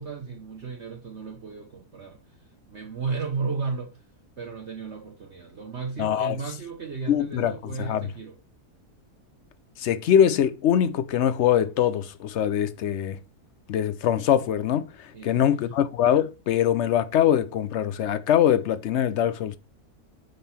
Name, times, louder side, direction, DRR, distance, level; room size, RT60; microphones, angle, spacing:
voice 1, 0.0-4.0 4.4-8.3 15.1-15.7, right 5 dB, 50° right, 1.2 m, -34 dB
voice 2, 6.0-6.4 7.1-7.5 7.8-8.0 9.8-13.2 13.7-19.6, left 10 dB, 70° left, 0.7 m, -23 dB
6.7 x 5.5 x 4.2 m
omnidirectional pair, 1.7 m